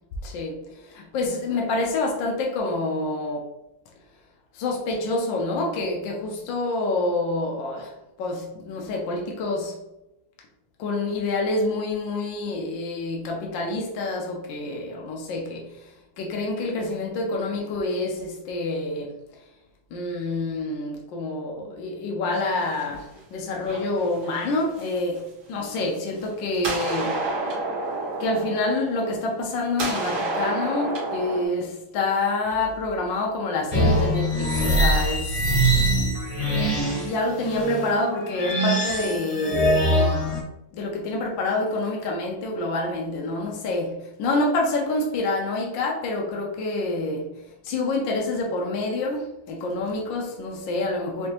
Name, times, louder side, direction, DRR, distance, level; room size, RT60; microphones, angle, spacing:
voice 1, 0.2-3.5 4.5-9.8 10.8-19.2 19.9-27.2 28.2-35.4 37.0-40.4 40.7-47.3 47.6-51.3, left 2 dB, 70° left, 1.4 m, -27 dB
sound 1, 22.3-23.2 23.6-25.2 25.8-26.3 26.5-29.5 29.8-31.4, right 2 dB, 60° right, 1.7 m, -30 dB
sound 2, 33.7-40.4, right 1 dB, 50° left, 0.4 m, -23 dB
5.2 x 2.7 x 2.9 m
omnidirectional pair, 2.2 m